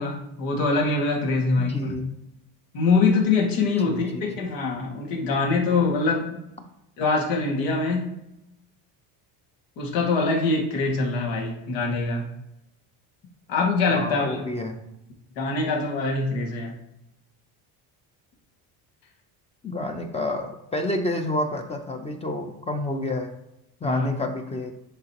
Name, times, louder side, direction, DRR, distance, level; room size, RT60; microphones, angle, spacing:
voice 1, 0.0-1.9 2.7-6.4 7.0-8.1 9.8-12.3 13.5-14.4 15.4-16.7 23.8-24.1, left 3 dB, 85° left, 0 dB, 2.2 m, -24 dB
voice 2, 1.6-2.1 3.8-4.3 13.9-14.8 19.6-23.3 23.8-24.7, left 1 dB, 15° left, 5 dB, 0.6 m, -29 dB
10.5 x 4.2 x 3.0 m, 0.87 s
cardioid pair, 140°, 42 cm